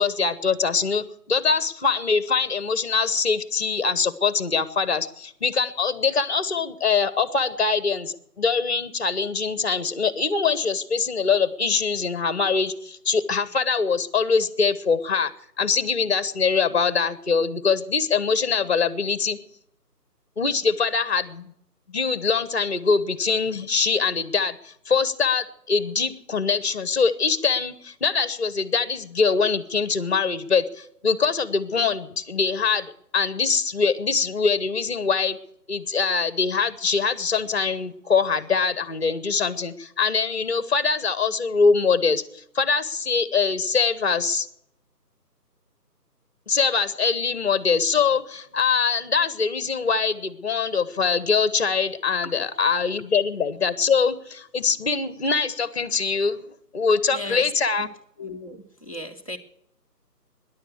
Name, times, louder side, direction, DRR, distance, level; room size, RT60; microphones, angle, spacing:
voice 1, 0.0-15.3 15.6-19.4 20.4-21.5 21.9-35.4 35.7-42.2 42.5-44.5 46.5-56.5 56.7-57.9, left 5 dB, 40° left, 15 dB, 1.1 m, -23 dB
voice 2, 57.1-57.5 57.8-57.9 58.2-59.4, left 1 dB, 20° left, 4 dB, 0.8 m, -36 dB
14.0 x 10.5 x 8.4 m, 0.72 s
figure-of-eight pair, 170°, 49 cm